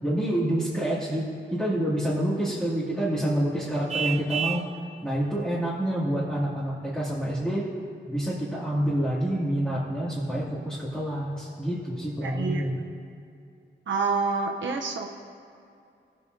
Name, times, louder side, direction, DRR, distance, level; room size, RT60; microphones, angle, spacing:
voice 1, 0.0-4.7 5.0-7.7 8.1-12.8, right 1 dB, 5° left, -11 dB, 2.5 m, -27 dB
Vehicle horn car horn honking, 3.9-4.7, right 8 dB, 35° right, 0.7 m, -29 dB
voice 2, 12.2-12.6 13.9-15.1, right 4 dB, 85° right, 2 dB, 0.7 m, -27 dB
18.5 x 8.1 x 2.7 m, 2.5 s
wide cardioid pair, 100°, 19 cm